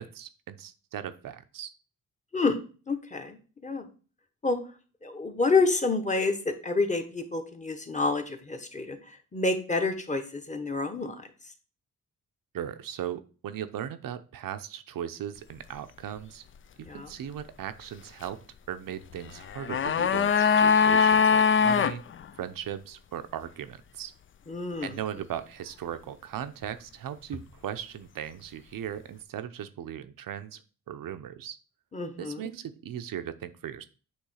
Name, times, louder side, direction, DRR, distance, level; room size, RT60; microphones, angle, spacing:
voice 1, 0.0-1.7 12.5-16.4 16.8-18.4 18.7-22.0 22.4-24.1 24.8-30.6 30.9-31.6 32.2-33.8, right 10 dB, 80° right, 11 dB, 0.8 m, -38 dB
voice 2, 2.9-3.9 4.4-4.6 5.0-9.0 9.3-11.2 16.8-17.1 24.5-25.0 31.9-32.5, left 3 dB, 20° left, 6 dB, 1.3 m, -28 dB
sound 1, 19.4-22.0 22.2-22.3, left 6 dB, 40° left, 0.4 m, -21 dB
8.6 x 3.2 x 6.4 m, 0.37 s
cardioid pair, 100°, 33 cm